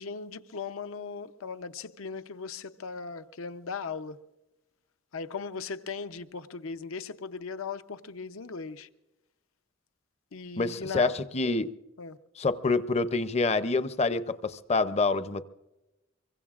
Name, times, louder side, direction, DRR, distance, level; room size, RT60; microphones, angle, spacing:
voice 1, 0.0-4.2 5.1-8.9 10.3-11.1 12.0-12.2, left 5 dB, 85° left, 0.7 m, -38 dB
voice 2, 10.6-11.7 12.4-15.4, left 3 dB, 30° left, 0.6 m, -27 dB
24.5 x 23.5 x 2.4 m
head